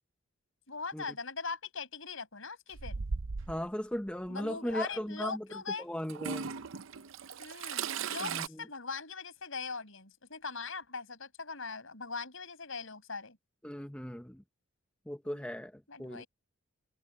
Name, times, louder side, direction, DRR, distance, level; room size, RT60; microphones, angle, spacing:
voice 1, 0.7-3.0 4.3-5.9 7.4-13.4 15.2-15.5 15.9-16.3, left 4 dB, 65° left, 6.1 m, -41 dB
Toilet flush / Trickle dribble, 2.7-3.6 4.7-4.8 6.1-8.5, right 5 dB, 65° right, 0.6 m, -37 dB
voice 2, 3.5-5.5 5.8-6.5 8.2-8.6 13.6-14.4 15.1-16.2, equal, 5° left, 0.7 m, -37 dB
head